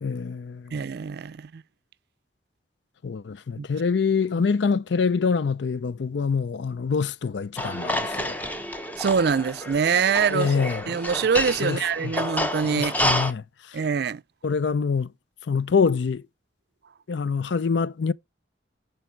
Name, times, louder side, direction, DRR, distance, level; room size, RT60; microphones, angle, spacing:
voice 1, 0.0-0.8 3.0-8.3 10.3-10.8 11.6-12.1 12.6-13.4 14.4-15.1 15.5-16.2 17.1-18.1, left 5 dB, 75° left, 0.4 m, -25 dB
voice 2, 0.7-1.6 3.6-3.7 9.0-10.6 10.9-13.0 13.7-14.2, right 6 dB, 60° right, 0.4 m, -24 dB
sound 1, 7.6-13.3, left 1 dB, 10° left, 0.8 m, -29 dB
11.0 x 4.7 x 4.4 m
head